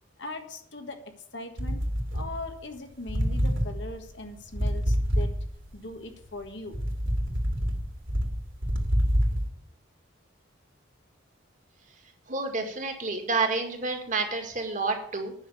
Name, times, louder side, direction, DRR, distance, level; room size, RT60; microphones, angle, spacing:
voice 1, 0.2-1.8 2.1-5.3 5.7-6.8, left 2 dB, 60° left, 6 dB, 1.5 m, -40 dB
sound 1, 1.6-2.8 3.1-5.8 6.2-9.5, equal, 65° right, 2.7 m, -27 dB
voice 2, 12.3-15.3, right 3 dB, 40° right, 4 dB, 2.0 m, -29 dB
9.7 x 6.5 x 8.5 m, 0.66 s
head